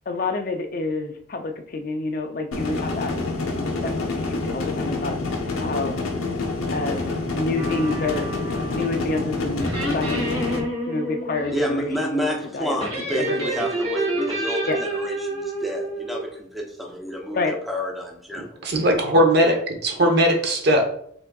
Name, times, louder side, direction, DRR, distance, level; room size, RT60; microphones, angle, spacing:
voice 1, 0.1-3.2 3.5-5.9 6.7-7.0 7.3-8.3 8.7-10.3 10.9-13.5 14.7-14.8 17.3-17.6, left 3 dB, 45° left, 6 dB, 0.4 m, -28 dB
sound 1, 2.5-10.6, left 3 dB, 90° left, 0.9 m, -27 dB
sound 2, 7.6-9.0 9.6-11.6 12.8-16.3, right 1 dB, 25° right, 1.1 m, -28 dB
voice 2, 11.5-18.7, equal, ahead, 0 dB, 0.6 m, -30 dB
voice 3, 18.6-20.8, equal, 55° right, 4 dB, 0.8 m, -19 dB
5.7 x 3.7 x 2.3 m, 0.65 s
head